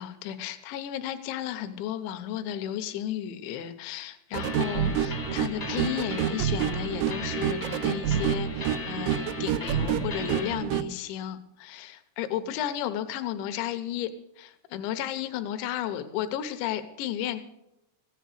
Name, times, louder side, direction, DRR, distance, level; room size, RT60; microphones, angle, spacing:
voice 1, 0.0-17.4, left 11 dB, 80° left, 9 dB, 3.0 m, -33 dB
sound 1, 4.3-10.9, right 9 dB, 85° right, 2.6 m, -28 dB
sound 2, 4.4-10.6, left 3 dB, 50° left, 1.0 m, -39 dB
15.0 x 10.5 x 6.6 m, 0.87 s
omnidirectional pair, 5.7 m